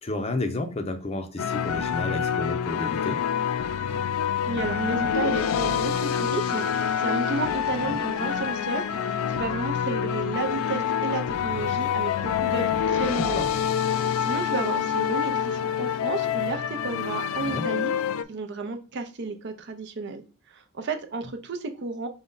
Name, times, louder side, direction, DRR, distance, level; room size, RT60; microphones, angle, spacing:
voice 1, 0.0-3.3 7.8-8.0 13.2-13.5 17.3-17.7, left 2 dB, 30° left, 0.5 m, -31 dB
sound 1, 1.4-18.2, left 8 dB, 80° left, 0.3 m, -26 dB
voice 2, 4.5-13.5 13.9-17.9 18.3-20.2 20.5-22.1, right 3 dB, 55° right, 0.6 m, -32 dB
5.2 x 2.2 x 3.8 m
head